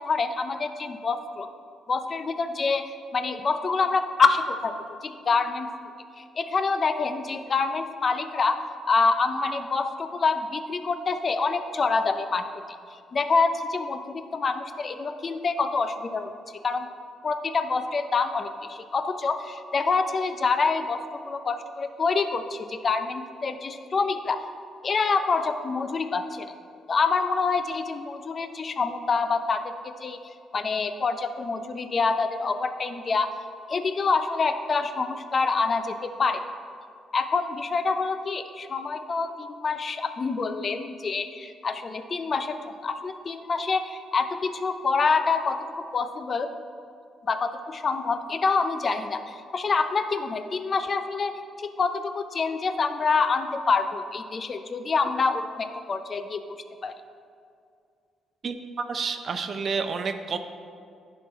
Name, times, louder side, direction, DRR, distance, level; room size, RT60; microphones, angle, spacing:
voice 1, 0.0-1.5 1.9-2.8 3.1-4.7 5.0-5.7 6.2-12.5 13.1-16.3 16.6-16.9 17.2-24.4 24.8-26.5 26.9-29.7 30.0-33.3 33.7-36.4 37.1-45.7 45.9-46.5 47.3-56.4 56.8-56.9, left 4 dB, 40° left, 9 dB, 0.5 m, -26 dB
voice 2, 58.4-60.4, right 5 dB, 50° right, 8 dB, 0.5 m, -30 dB
10.5 x 4.4 x 4.3 m, 2.4 s
cardioid pair, 90°, 0 cm